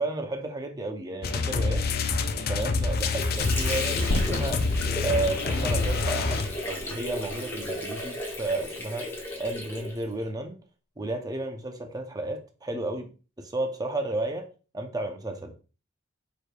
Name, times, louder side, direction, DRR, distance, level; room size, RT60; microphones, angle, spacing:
voice 1, 0.0-1.9 2.4-4.7 5.0-9.1 9.4-10.6 11.0-13.1 13.4-14.5 14.7-15.6, right 2 dB, 20° right, 0.6 m, -32 dB
sound 1, 1.2-6.8, left 3 dB, 50° left, 0.5 m, -27 dB
Water / Sink (filling or washing), 2.6-10.3, left 1 dB, 10° left, 1.1 m, -35 dB
sound 2, 4.1-8.3, left 1 dB, 90° left, 0.7 m, -35 dB
4.8 x 4.6 x 2.3 m
head